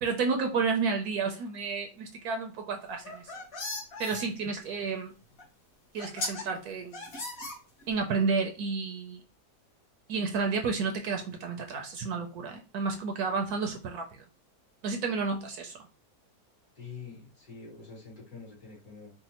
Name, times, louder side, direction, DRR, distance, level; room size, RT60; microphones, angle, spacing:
voice 1, 0.0-3.3 4.0-5.1 5.9-7.1 7.9-9.2 10.1-14.2 14.8-15.8, right 4 dB, 70° right, 4 dB, 1.0 m, -31 dB
sound 1, 2.9-4.2 5.4-5.5 6.0-6.4 6.9-8.0, left 2 dB, 45° left, 1.1 m, -37 dB
voice 2, 16.7-19.1, left 5 dB, 60° left, -5 dB, 2.5 m, -46 dB
5.0 x 2.1 x 2.8 m, 0.34 s
omnidirectional pair, 1.8 m